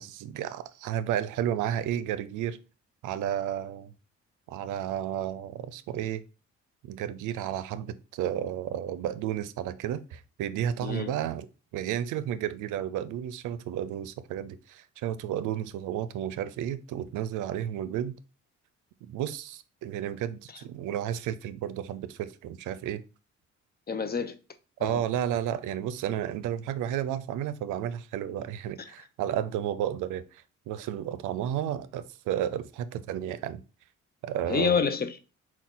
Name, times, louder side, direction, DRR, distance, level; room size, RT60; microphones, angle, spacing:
voice 1, 0.0-2.6 3.0-3.9 4.5-6.2 6.8-11.5 11.7-18.1 19.0-23.0 24.8-33.6 34.2-34.9, right 10 dB, 85° right, 0.5 m, -32 dB
voice 2, 10.8-11.1 23.9-24.3 24.8-25.0 28.8-28.9 34.5-35.2, left 6 dB, 30° left, 0.6 m, -28 dB
5.9 x 2.3 x 3.8 m
cardioid pair, 90°, 30 cm